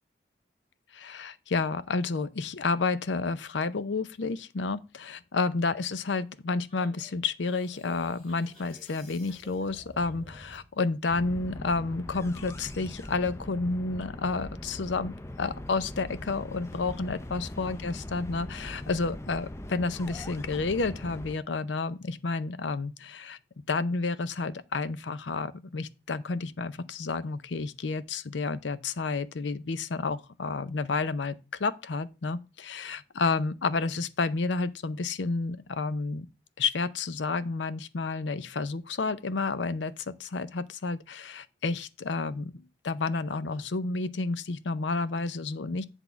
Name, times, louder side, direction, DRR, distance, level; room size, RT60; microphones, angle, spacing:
voice 1, 0.9-23.4 23.7-36.3 36.6-42.5 42.8-45.8, left 3 dB, 75° left, 0.6 m, -30 dB
sound 1, 6.7-10.7, equal, 30° left, 4.5 m, -51 dB
sound 2, 11.1-21.4, left 1 dB, 15° left, 0.5 m, -41 dB
8.3 x 3.6 x 6.8 m
head